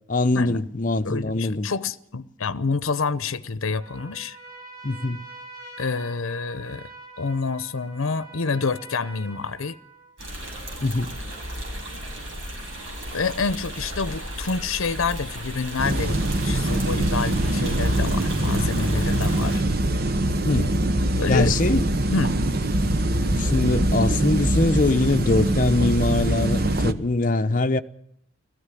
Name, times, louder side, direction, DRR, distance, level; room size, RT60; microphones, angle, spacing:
voice 1, 0.1-1.7 4.8-5.2 10.8-11.1 20.4-20.7 21.3-21.9 23.3-27.8, left 2 dB, 40° left, 0.8 m, -22 dB
voice 2, 1.0-4.4 5.8-6.9 7.2-9.8 13.1-19.7 21.2-21.5 22.1-22.4, left 4 dB, 80° left, 0.7 m, -28 dB
Trumpet, 3.7-10.2, right 3 dB, 20° right, 4.4 m, -44 dB
sound 1, 10.2-19.6, equal, 70° right, 7.1 m, -35 dB
sound 2, 15.8-26.9, right 1 dB, 45° right, 0.9 m, -23 dB
18.0 x 15.0 x 9.8 m
head